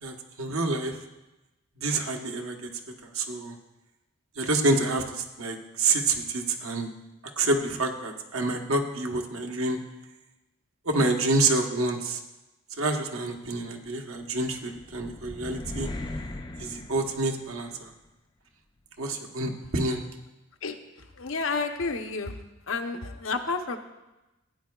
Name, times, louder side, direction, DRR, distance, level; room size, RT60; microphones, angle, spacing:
voice 1, 0.0-1.0 1.8-2.6 3.0-3.6 4.4-6.9 7.4-9.8 10.8-12.2 12.8-15.9 16.6-17.9 19.0-20.0, right 2 dB, 80° right, 2 dB, 1.2 m, -28 dB
sound 1, 14.5-17.8, left 1 dB, 20° left, 0.4 m, -38 dB
voice 2, 21.2-22.4 22.7-23.8, left 4 dB, 70° left, 5 dB, 0.8 m, -30 dB
15.5 x 9.5 x 2.4 m, 1.0 s
head